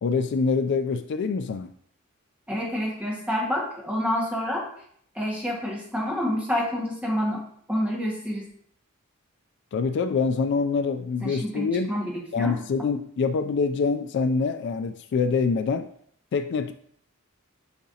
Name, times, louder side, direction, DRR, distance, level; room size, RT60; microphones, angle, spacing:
voice 1, 0.0-1.7 9.7-11.9 12.3-15.9 16.3-16.7, left 4 dB, 55° left, 9 dB, 0.3 m, -25 dB
voice 2, 2.5-4.7 5.1-8.5 11.2-12.6, equal, 5° right, -3 dB, 1.6 m, -28 dB
6.5 x 5.7 x 2.8 m, 0.65 s
head